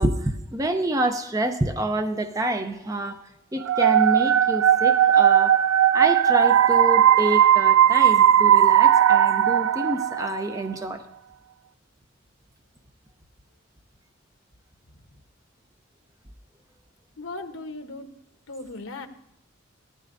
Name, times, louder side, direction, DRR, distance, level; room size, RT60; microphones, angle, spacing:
voice 1, 0.0-3.2 3.5-5.5 5.9-11.0, right 1 dB, 15° right, 6 dB, 0.6 m, -27 dB
sound 1, 3.7-10.5, right 10 dB, 85° right, 0.4 m, -17 dB
voice 2, 17.2-18.1 18.5-19.1, left 2 dB, 80° left, 7 dB, 1.1 m, -37 dB
15.0 x 12.5 x 2.6 m, 0.83 s
head